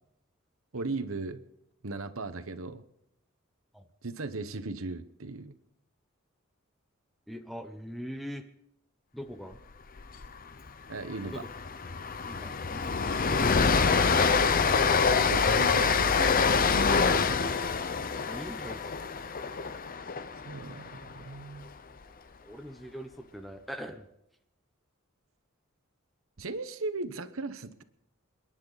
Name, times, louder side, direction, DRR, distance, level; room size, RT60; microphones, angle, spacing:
voice 1, 0.7-1.4 1.8-2.8 4.0-5.5 10.9-11.5 14.9-16.7 17.0-17.2 20.4-21.7 26.4-27.8, right 3 dB, 70° right, 11 dB, 1.1 m, -37 dB
voice 2, 7.3-8.4 9.1-9.6 11.2-11.4 12.3-13.6 18.2-18.8 22.4-24.1, equal, ahead, 6 dB, 0.9 m, -41 dB
Train, 10.0-10.3 10.5-10.7 11.1-21.2, left 5 dB, 45° left, 0.8 m, -26 dB
30.0 x 10.5 x 4.1 m, 0.81 s
head